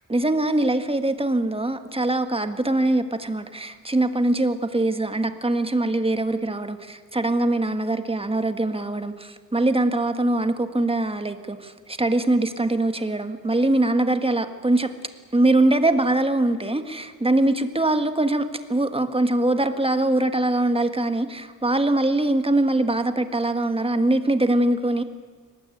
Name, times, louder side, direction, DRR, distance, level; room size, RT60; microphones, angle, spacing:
voice 1, 0.1-14.9 15.3-25.0, right 2 dB, 15° right, 8 dB, 1.6 m, -22 dB
23.0 x 20.0 x 9.3 m, 1.6 s
wide cardioid pair, 120°, 32 cm